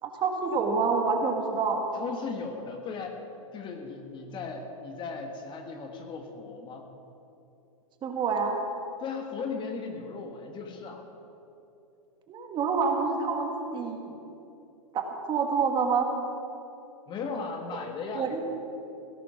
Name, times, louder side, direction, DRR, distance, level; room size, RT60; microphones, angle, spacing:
voice 1, 0.0-1.8 8.0-8.6 12.3-14.2 14.9-15.0 15.3-16.1 18.1-18.4, right 5 dB, 25° right, 3 dB, 1.8 m, -27 dB
voice 2, 1.9-3.2 3.5-6.9 9.0-11.0 17.1-18.4, left 4 dB, 25° left, 4 dB, 1.6 m, -37 dB
17.0 x 11.0 x 5.9 m, 2.8 s
hypercardioid pair, 120°, 18 cm